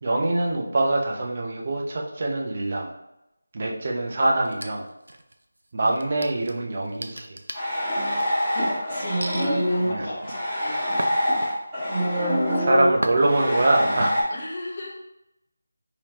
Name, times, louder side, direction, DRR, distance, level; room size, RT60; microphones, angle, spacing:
voice 1, 0.0-2.9 3.5-4.8 5.7-7.3 9.8-10.0 12.6-14.2, right 2 dB, 40° right, -1 dB, 0.7 m, -24 dB
sound 1, 4.4-5.4 5.9-8.5 9.2-9.5 10.0-11.8 12.2-12.6 13.0-13.6, right 1 dB, 85° right, 0.4 m, -35 dB
sound 2, 7.5-14.2, equal, 5° right, 1.4 m, -25 dB
voice 2, 8.5-11.4 11.9-12.6 13.5-13.6 14.3-15.0, left 2 dB, 35° left, -5 dB, 1.1 m, -37 dB
3.4 x 3.0 x 3.0 m, 0.89 s
figure-of-eight pair, 170°, 0 cm